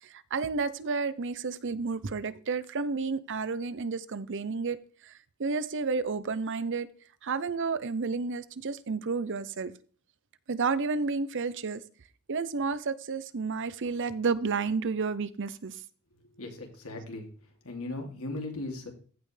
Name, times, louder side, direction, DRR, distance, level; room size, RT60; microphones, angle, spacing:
voice 1, 0.0-4.8 5.0-6.9 7.2-9.7 10.5-11.8 12.3-15.8, right 4 dB, 55° right, 0.7 m, -31 dB
voice 2, 16.3-17.3 17.6-18.9, left 2 dB, 75° left, 2.7 m, -37 dB
15.5 x 5.5 x 3.3 m
head